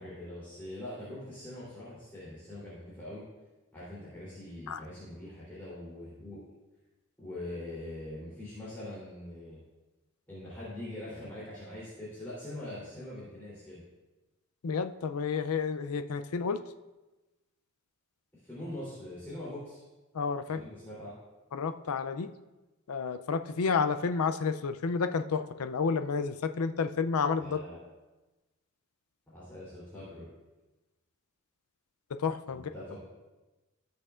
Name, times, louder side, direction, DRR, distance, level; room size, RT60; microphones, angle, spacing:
voice 1, 0.0-3.2 3.7-6.4 7.2-9.6 10.3-13.8 18.4-19.8 20.4-21.1 27.4-27.8 29.3-30.3 32.5-33.0, left 1 dB, 10° left, -10 dB, 3.2 m, -43 dB
voice 2, 14.6-16.6 20.1-20.6 21.5-22.3 22.9-27.6 32.2-32.7, left 5 dB, 90° left, 10 dB, 0.5 m, -30 dB
18.0 x 6.7 x 2.5 m, 1.1 s
head